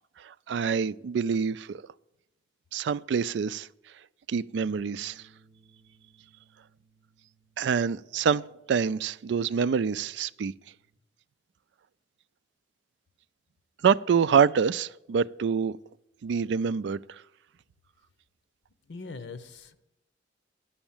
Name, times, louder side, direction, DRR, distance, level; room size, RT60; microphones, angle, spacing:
voice 1, 0.2-1.8 2.7-3.7 4.3-5.2 7.6-10.5 13.8-15.8 16.2-17.0, right 6 dB, 85° right, 0.3 m, -26 dB
sound 1, 4.7-11.0, right 2 dB, 30° right, 1.2 m, -62 dB
voice 2, 18.9-19.7, left 4 dB, 85° left, 0.8 m, -41 dB
10.0 x 7.1 x 7.2 m
head